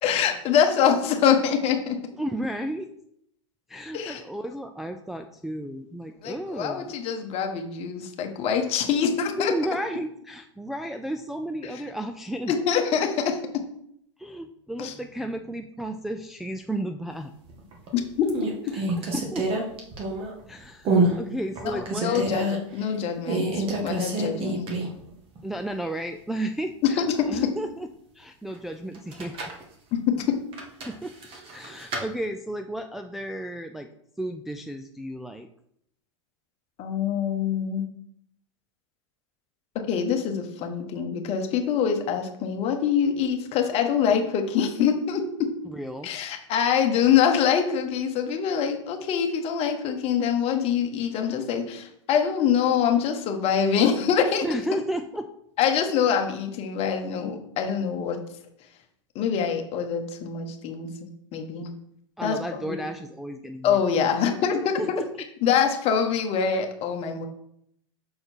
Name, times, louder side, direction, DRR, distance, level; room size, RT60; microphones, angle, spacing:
voice 1, 0.0-2.0 3.9-4.2 6.2-9.5 11.6-11.7 12.5-13.6 14.8-14.9 17.9-18.3 21.6-22.5 22.7-24.7 26.8-27.5 29.9-30.4 36.8-37.9 39.7-45.5 46.0-54.4 55.6-58.2 59.1-60.9 61.3-61.7 62.2-62.8 63.6-64.7 65.4-67.3, left 7 dB, 40° left, 4 dB, 1.3 m, -24 dB
voice 2, 2.2-2.9 3.7-6.9 9.4-12.5 14.2-17.3 18.7-19.5 20.5-22.2 25.4-27.9 28.1-29.4 30.9-31.1 31.5-33.9 34.2-35.5 45.6-46.5 54.4-55.3 62.2-63.8 64.8-65.2, right 1 dB, ahead, 4 dB, 0.3 m, -33 dB
sound 1, 17.5-17.9 18.3-20.4 20.8-21.2 21.6-22.6 23.3-25.0 25.4-25.5 28.9-29.6 30.5-32.1, right 2 dB, 35° right, 1.7 m, -27 dB
6.6 x 4.2 x 4.5 m, 0.71 s
hypercardioid pair, 100°, 16 cm